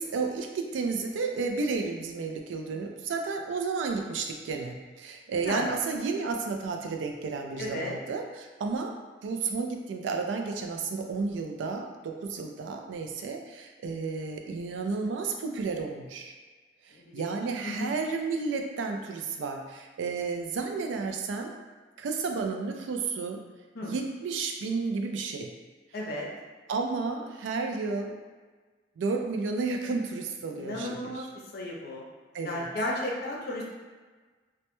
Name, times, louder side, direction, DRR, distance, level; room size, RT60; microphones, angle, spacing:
voice 1, 0.0-8.9 9.2-16.3 17.1-21.5 22.0-23.4 23.8-25.5 26.7-28.2 29.0-31.3 32.3-32.7, right 4 dB, 90° right, 4 dB, 0.3 m, -32 dB
voice 2, 7.6-8.0 16.9-17.3 17.6-17.9 23.7-23.9 25.9-26.3 30.6-31.2 31.5-32.0 32.4-33.6, left 1 dB, 55° left, -3 dB, 0.5 m, -33 dB
2.1 x 2.1 x 2.9 m, 1.4 s
head